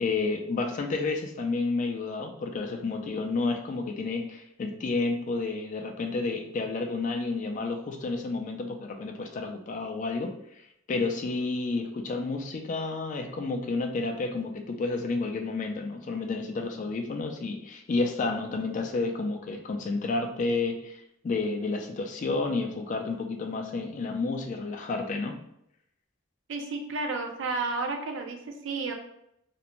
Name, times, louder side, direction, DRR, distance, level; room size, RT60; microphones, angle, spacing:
voice 1, 0.0-10.3 10.9-25.4, left 3 dB, 40° left, 3 dB, 0.3 m, -30 dB
voice 2, 26.5-28.9, right 3 dB, 65° right, 3 dB, 0.4 m, -32 dB
2.4 x 2.1 x 2.9 m, 0.76 s
head